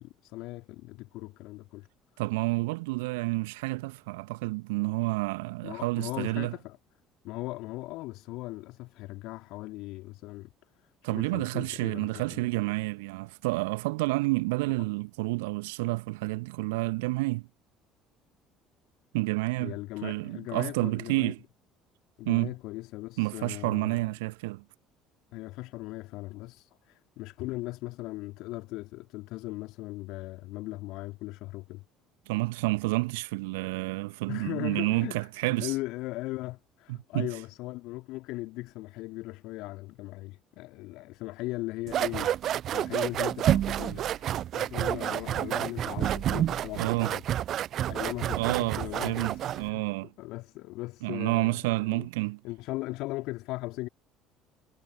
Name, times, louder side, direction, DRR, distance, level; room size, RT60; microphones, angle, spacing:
voice 1, 0.0-1.9 5.6-6.8 7.2-10.5 11.1-12.4 19.6-21.3 22.2-24.1 25.3-31.8 34.3-42.4 42.7-47.2 47.9-49.8 50.2-52.1 52.4-53.9, left 20 dB, 60° left, 2.5 m, -38 dB
voice 2, 2.2-6.5 11.0-17.5 19.1-21.4 22.3-22.5 23.2-24.6 32.3-35.7 36.9-37.3 46.8-47.1 48.4-50.1 51.0-52.4, right 23 dB, 70° right, 1.7 m, -29 dB
sound 1, 41.9-49.7, right 11 dB, 50° right, 0.3 m, -29 dB
figure-of-eight pair, 55°, 0 cm